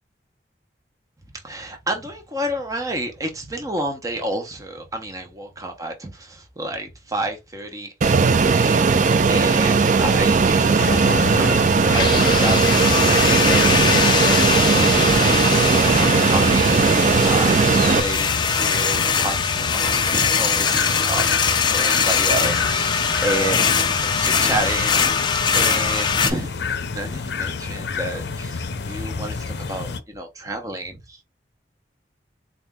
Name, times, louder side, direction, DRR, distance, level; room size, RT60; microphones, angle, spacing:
voice 1, 1.4-12.6 13.0-13.8 14.2-21.2 21.6-25.2 25.5-26.6 26.9-31.2, right 1 dB, 20° right, 0.8 m, -30 dB
Fixed-wing aircraft airplane, 8.0-18.0, right 4 dB, 45° right, 0.4 m, -17 dB
sound 1, 10.8-30.0, left 4 dB, 75° left, 0.6 m, -29 dB
sound 2, 11.9-26.3, left 6 dB, 25° left, 0.4 m, -22 dB
4.1 x 2.5 x 3.5 m
head